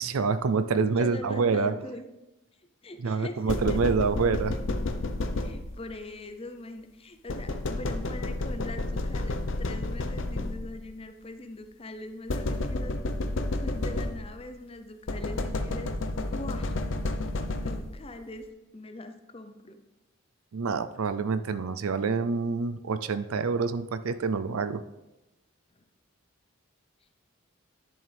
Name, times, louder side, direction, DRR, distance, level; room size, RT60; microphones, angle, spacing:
voice 1, 0.0-1.8 3.0-4.6 20.5-24.8, right 4 dB, 90° right, 12 dB, 0.5 m, -27 dB
voice 2, 0.7-2.1 2.8-3.8 5.4-13.0 13.6-15.9 16.3-16.8 17.5-18.5 18.7-19.8 25.8-25.9, left 1 dB, 25° left, 7 dB, 0.6 m, -42 dB
sound 1, 3.5-5.9 7.3-10.9 12.3-14.5 15.1-18.1, left 2 dB, 65° left, 0.7 m, -31 dB
10.5 x 7.2 x 3.4 m, 1.0 s
head